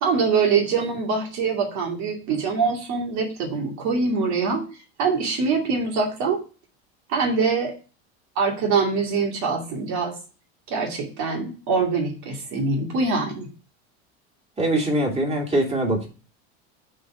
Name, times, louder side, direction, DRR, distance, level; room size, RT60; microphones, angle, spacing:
voice 1, 0.0-4.6 5.0-6.4 7.1-7.7 8.4-10.1 10.7-13.5, right 4 dB, 60° right, 1 dB, 2.4 m, -24 dB
voice 2, 14.6-16.1, right 1 dB, 20° right, 0 dB, 2.8 m, -22 dB
8.3 x 4.0 x 6.1 m, 0.35 s
supercardioid pair, 110°, 32 cm